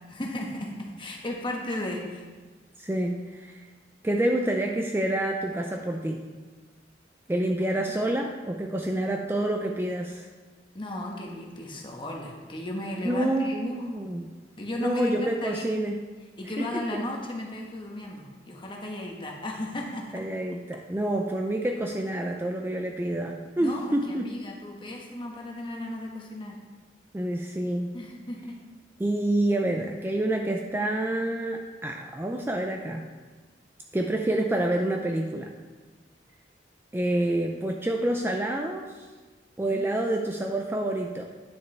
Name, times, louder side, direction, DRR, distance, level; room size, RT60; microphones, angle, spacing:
voice 1, 0.1-2.3 7.4-7.5 10.7-13.9 14.6-15.6 16.4-20.1 23.6-26.6 27.9-28.6 39.6-39.9, left 1 dB, 25° left, 0 dB, 1.2 m, -35 dB
voice 2, 2.8-3.6 4.0-6.2 7.3-10.3 13.0-14.3 14.8-16.0 16.6-16.8 20.1-24.3 27.1-27.9 29.0-33.1 33.9-35.5 36.9-39.1 39.6-41.3, right 1 dB, 15° right, 2 dB, 0.4 m, -28 dB
9.7 x 6.5 x 3.3 m, 1.3 s
head